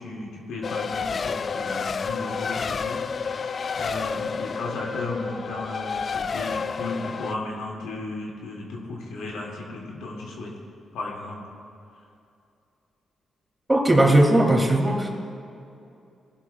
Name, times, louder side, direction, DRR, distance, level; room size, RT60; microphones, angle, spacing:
voice 1, 0.0-10.5 10.9-11.5, left 2 dB, 85° left, -3 dB, 2.2 m, -35 dB
Race car auto racing, 0.6-7.4, left 5 dB, 50° left, 0.3 m, -30 dB
voice 2, 13.7-15.1, right 1 dB, 15° right, 0 dB, 2.5 m, -18 dB
18.5 x 11.5 x 2.3 m, 2.6 s
supercardioid pair, 55°, 0 cm